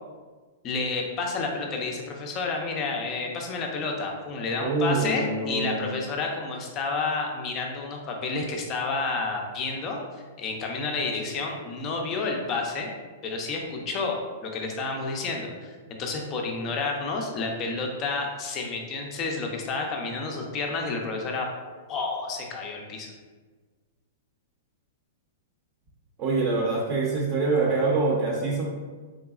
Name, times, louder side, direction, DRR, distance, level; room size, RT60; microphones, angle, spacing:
voice 1, 0.6-12.9 13.2-15.7 16.0-21.5 21.9-23.1, left 3 dB, 25° left, 1 dB, 0.5 m, -30 dB
voice 2, 4.6-5.9 26.2-28.7, right 3 dB, 30° right, -5 dB, 0.6 m, -25 dB
3.9 x 3.4 x 2.3 m, 1.4 s
supercardioid pair, 165°, 0 cm